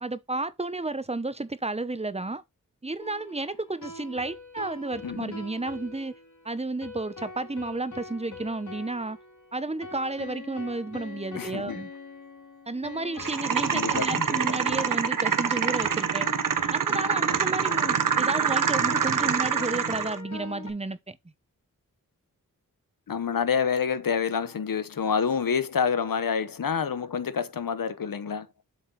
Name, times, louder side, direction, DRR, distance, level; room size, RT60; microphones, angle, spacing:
voice 1, 0.0-2.4 2.8-6.1 6.4-9.2 9.5-11.9 12.7-16.3 16.7-21.2, right 2 dB, 20° right, 0.9 m, -32 dB
sound 1, 3.0-20.7, left 3 dB, 55° left, 2.4 m, -43 dB
voice 2, 5.0-5.4 11.3-11.8 13.7-14.6 23.1-28.5, left 6 dB, 70° left, 1.0 m, -28 dB
sound 2, 13.2-20.2, right 7 dB, 65° right, 0.9 m, -26 dB
7.6 x 3.8 x 4.2 m
cardioid pair, 45°, 35 cm